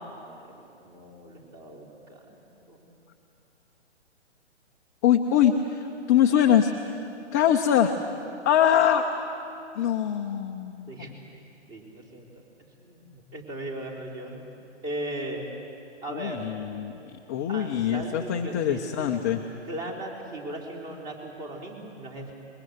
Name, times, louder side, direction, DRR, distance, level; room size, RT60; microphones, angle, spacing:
voice 1, 0.0-2.2 2.7-3.0 10.9-11.2 11.7-12.3 12.8-14.5 14.8-15.4 16.0-16.4 17.5-19.2 19.7-22.3, right 1 dB, 25° right, 1 dB, 3.8 m, -38 dB
voice 2, 5.0-6.7 7.3-7.9 8.4-9.1 9.8-10.9 16.1-19.4, left 9 dB, 15° left, 2 dB, 0.5 m, -23 dB
26.0 x 21.5 x 8.0 m, 2.7 s
hypercardioid pair, 140°, 36 cm